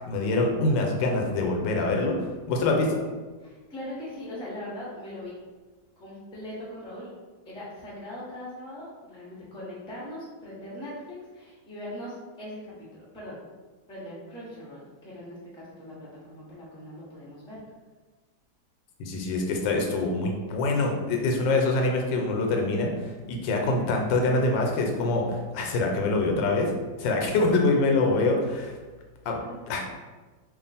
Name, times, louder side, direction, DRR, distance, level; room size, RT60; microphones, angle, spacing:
voice 1, 0.1-2.2 2.5-3.0 19.0-26.7 27.0-28.7 29.3-29.4 29.7-29.9, left 2 dB, 80° left, 1 dB, 1.3 m, -25 dB
voice 2, 3.4-5.3 6.0-7.1 7.4-13.4 13.9-17.6 29.4-29.6, left 1 dB, 5° left, -7 dB, 0.5 m, -40 dB
3.0 x 2.4 x 4.0 m, 1.3 s
omnidirectional pair, 2.0 m